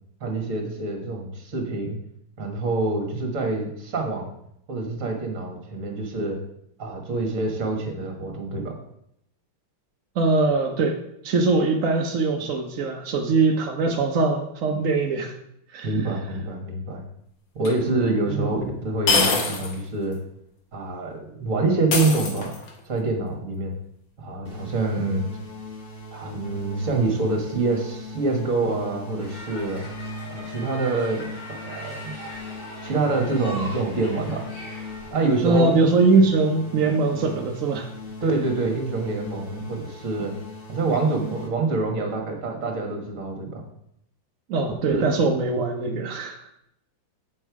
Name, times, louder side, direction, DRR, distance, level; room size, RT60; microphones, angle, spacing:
voice 1, 0.2-2.0 2.4-4.3 4.7-6.4 6.8-8.7 15.8-17.0 17.5-20.2 20.7-22.5 22.9-23.8 24.2-25.3 26.1-29.8 30.3-32.1 32.8-34.4 35.1-35.7 38.2-40.3 40.7-43.6 44.9-45.0, right 3 dB, 40° right, 2 dB, 1.6 m, -26 dB
voice 2, 10.2-11.0 11.2-15.4 15.7-15.9 18.3-18.6 35.4-37.9 44.5-46.5, right 3 dB, 65° right, 2 dB, 0.8 m, -22 dB
sound 1, 17.6-17.7 19.1-19.8 20.1-20.2 21.9-22.8, left 4 dB, 70° left, 2.0 m, -23 dB
sound 2, 24.4-41.5, left 1 dB, 30° left, 1.3 m, -40 dB
sound 3, 29.2-35.1, left 1 dB, 90° left, 3.1 m, -40 dB
8.3 x 5.4 x 4.7 m, 0.77 s
omnidirectional pair, 2.2 m